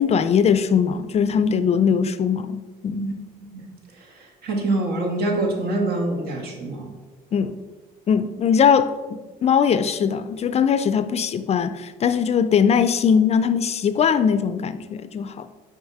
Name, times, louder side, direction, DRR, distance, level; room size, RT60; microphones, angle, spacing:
voice 1, 0.0-3.1 7.3-7.5 8.1-15.5, left 7 dB, 40° left, 12 dB, 0.4 m, -20 dB
voice 2, 4.4-6.9, right 2 dB, 65° right, 1 dB, 1.6 m, -25 dB
6.3 x 4.6 x 4.7 m, 1.3 s
cardioid pair, 110°, 17 cm